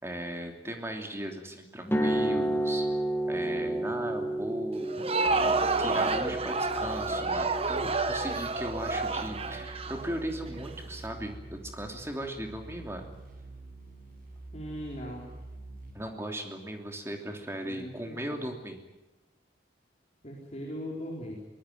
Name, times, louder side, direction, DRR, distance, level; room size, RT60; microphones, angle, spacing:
voice 1, 0.0-2.9 3.3-5.0 5.8-13.1 15.9-18.8, right 1 dB, 15° right, 3 dB, 3.0 m, -37 dB
sound 1, 1.8-9.9, right 1 dB, 10° left, 2.0 m, -32 dB
Crowd, 4.8-10.7, right 3 dB, 30° right, 1.3 m, -29 dB
sound 2, 5.3-15.9, right 2 dB, 50° right, 6.8 m, -46 dB
voice 2, 14.5-15.3 17.6-18.4 20.2-21.4, equal, 35° left, -3 dB, 4.2 m, -39 dB
23.0 x 19.5 x 9.3 m, 1.0 s
head